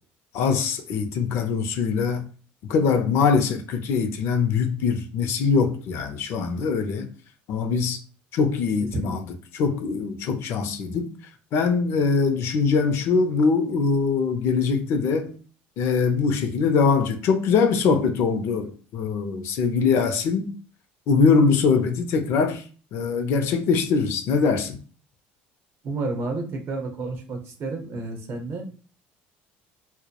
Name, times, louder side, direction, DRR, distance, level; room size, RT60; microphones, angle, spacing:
voice 1, 0.3-2.3 2.7-7.1 7.5-8.0 8.3-11.1 11.5-15.3 15.8-20.5 21.1-22.6 22.9-24.8, left 5 dB, 60° left, 0.4 m, -22 dB
voice 2, 8.8-9.2 25.8-28.6, right 3 dB, 50° right, 0.7 m, -30 dB
2.2 x 2.0 x 2.8 m
supercardioid pair, 100°, 5 cm